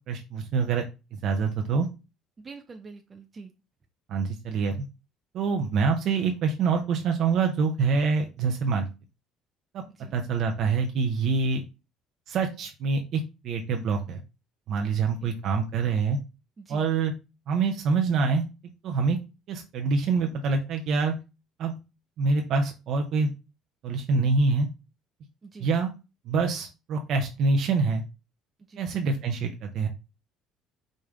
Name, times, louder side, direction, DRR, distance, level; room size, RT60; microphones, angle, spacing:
voice 1, 0.1-0.8 1.1-1.9 4.1-4.8 5.3-8.9 9.7-9.8 10.1-11.6 12.3-14.2 14.7-16.2 16.7-17.1 17.5-18.5 18.8-19.2 19.5-21.2 21.6-21.8 22.2-23.3 23.8-24.7 25.6-25.9 26.2-28.0 28.8-29.9, right 4 dB, 65° right, 4 dB, 0.8 m, -25 dB
voice 2, 2.4-3.5 9.9-10.2 15.0-15.4 16.6-16.9 25.4-25.7 28.7-28.9, right 4 dB, 30° right, 5 dB, 0.6 m, -45 dB
5.2 x 2.7 x 3.6 m, 0.28 s
supercardioid pair, 80°, 0 cm